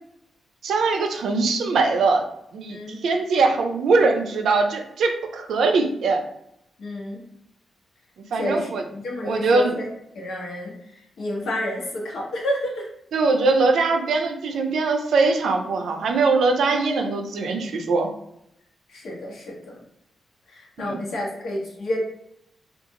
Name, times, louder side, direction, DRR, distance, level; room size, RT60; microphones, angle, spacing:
voice 1, 0.6-2.3 2.5-2.8 3.0-6.2 8.3-8.8 9.2-9.7 13.1-18.1 20.8-21.0, right 3 dB, 85° right, 4 dB, 0.4 m, -21 dB
voice 2, 6.8-7.3 8.3-9.8 10.1-12.9 18.9-19.5 20.5-22.0, left 1 dB, 80° left, -2 dB, 0.9 m, -30 dB
2.5 x 2.3 x 2.8 m, 0.78 s
cardioid pair, 105°, 0 cm